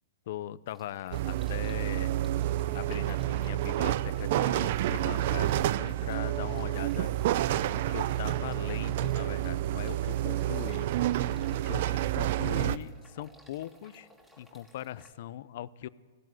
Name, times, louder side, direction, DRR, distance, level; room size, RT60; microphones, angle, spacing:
voice 1, 0.3-2.1 2.7-7.1 7.6-11.0 11.6-14.1 14.4-15.9, left 13 dB, 55° left, 18 dB, 0.6 m, -40 dB
sound 1, 0.7-15.1, equal, 5° right, 2.8 m, -57 dB
sound 2, 1.1-12.8, right 13 dB, 55° right, 0.6 m, -29 dB
18.5 x 16.0 x 9.2 m, 1.4 s
hypercardioid pair, 150°, 0 cm